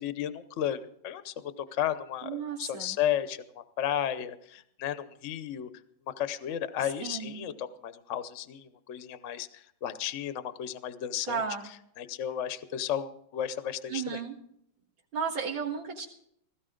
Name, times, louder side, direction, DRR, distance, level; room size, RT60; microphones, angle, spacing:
voice 1, 0.0-3.4 3.8-5.7 6.2-11.4 12.0-14.2, left 10 dB, 50° left, 12 dB, 0.9 m, -33 dB
voice 2, 2.2-3.0 6.8-7.5 11.2-11.7 13.9-14.3 15.1-16.1, right 6 dB, 80° right, -4 dB, 2.5 m, -34 dB
17.0 x 15.5 x 3.9 m, 0.72 s
omnidirectional pair, 2.2 m